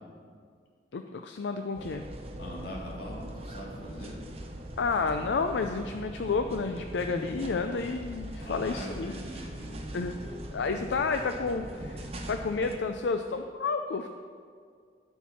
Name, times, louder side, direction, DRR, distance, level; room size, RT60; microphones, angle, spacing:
voice 1, 0.9-2.0 4.8-9.1 9.9-10.2 10.5-14.1, left 4 dB, 75° left, 6 dB, 0.4 m, -30 dB
sound 1, 1.8-12.8, right 1 dB, 35° right, 0.9 m, -41 dB
voice 2, 2.4-4.2 8.4-10.4, equal, 60° left, -4 dB, 2.3 m, -42 dB
13.5 x 4.6 x 5.7 m, 2.1 s
head